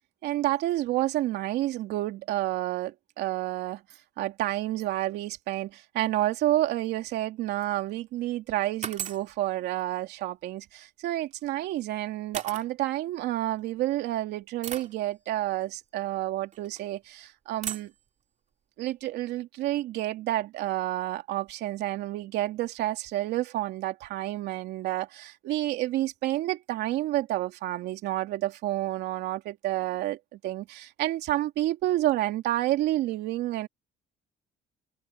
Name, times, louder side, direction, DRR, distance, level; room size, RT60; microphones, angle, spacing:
voice 1, 0.2-3.8 4.2-17.9 18.8-33.7, right 15 dB, 85° right, 2.8 m, -29 dB
sound 1, 7.6-8.0 8.8-9.3 11.3-11.5 12.3-12.7 13.6-13.7 14.6-15.0 16.5-16.8 17.6-18.0, right 8 dB, 45° right, 3.3 m, -36 dB
cardioid pair, 110°, 17 cm